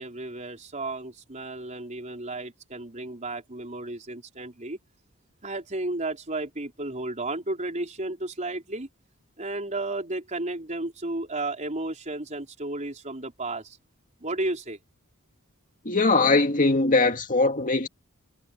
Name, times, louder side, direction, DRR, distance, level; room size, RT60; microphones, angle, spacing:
voice 1, 0.0-4.8 5.4-8.9 9.4-13.8 14.2-14.8, right 2 dB, 35° right, 4.4 m, -33 dB
voice 2, 15.9-17.9, left 3 dB, 40° left, 2.2 m, -21 dB
head